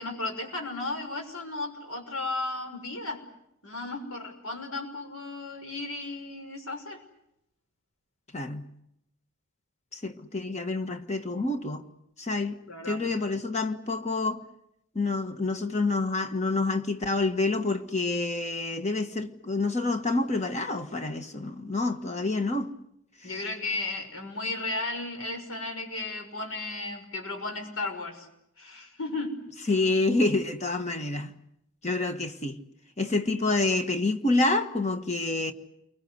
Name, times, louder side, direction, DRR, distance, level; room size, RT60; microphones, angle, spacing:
voice 1, 0.0-3.2 3.6-7.0 12.7-13.0 23.2-28.3 28.6-29.3, left 2 dB, 85° left, 5.9 m, -34 dB
voice 2, 8.3-8.7 9.9-11.9 12.2-12.6 12.9-14.4 14.9-22.7 29.7-31.3 31.8-32.6 33.0-35.5, left 2 dB, 30° left, 1.6 m, -28 dB
29.0 x 24.0 x 8.1 m
head